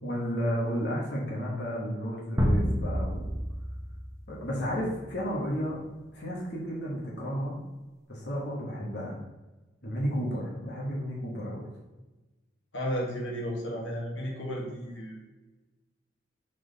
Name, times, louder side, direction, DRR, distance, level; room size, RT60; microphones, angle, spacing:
voice 1, 0.0-3.3 4.3-5.8 6.1-7.7 8.1-9.2 9.8-11.7, equal, 55° left, -4 dB, 1.5 m, -32 dB
sound 1, 2.4-4.8, equal, 15° right, 1.0 m, -28 dB
voice 2, 12.7-15.3, equal, 75° left, -2 dB, 1.6 m, -33 dB
6.0 x 4.1 x 4.0 m, 1.1 s
head